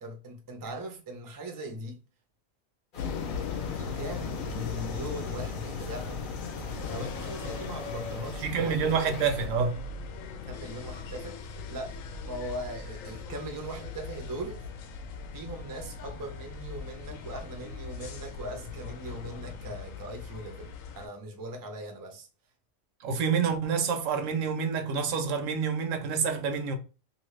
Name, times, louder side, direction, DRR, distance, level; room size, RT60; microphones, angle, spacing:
voice 1, 0.0-2.0 3.7-6.2 6.9-9.1 10.4-11.9 12.2-14.6 15.3-22.3, right 1 dB, 30° right, 0.3 m, -40 dB
sound 1, 2.9-9.5, left 3 dB, 50° left, 0.8 m, -44 dB
sound 2, 3.0-21.1, left 5 dB, 85° left, 1.0 m, -38 dB
voice 2, 8.4-9.8 23.0-26.8, right 6 dB, 80° right, 1.0 m, -28 dB
2.7 x 2.7 x 3.2 m
omnidirectional pair, 1.3 m